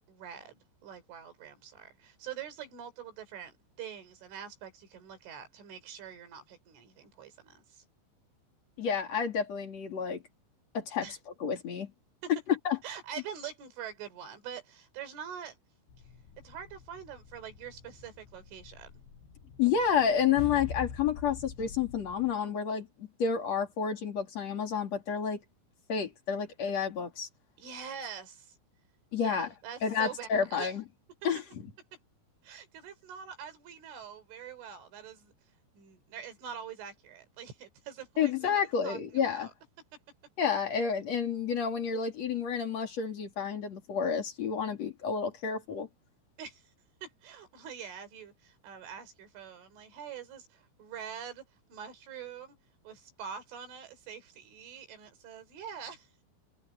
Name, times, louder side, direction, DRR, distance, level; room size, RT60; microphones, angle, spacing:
voice 1, 0.1-7.8 11.0-11.2 12.2-12.3 12.8-15.6 16.4-18.9 27.6-28.5 29.2-30.7 32.4-35.3 35.8-39.5 46.4-46.6 47.0-51.4 51.7-52.6 52.8-56.1, right 8 dB, 70° right, 6.4 m, -44 dB
voice 2, 8.8-10.2 10.7-11.1 11.4-11.9 12.3-12.4 12.6-12.8 19.6-22.9 23.2-25.4 25.9-27.3 29.1-29.5 29.8-30.8 31.2-31.4 38.2-39.5 40.4-45.9, left 7 dB, 40° left, 3.1 m, -30 dB
sound 1, 15.9-22.4, left 6 dB, 65° left, 7.5 m, -46 dB
omnidirectional pair, 5.7 m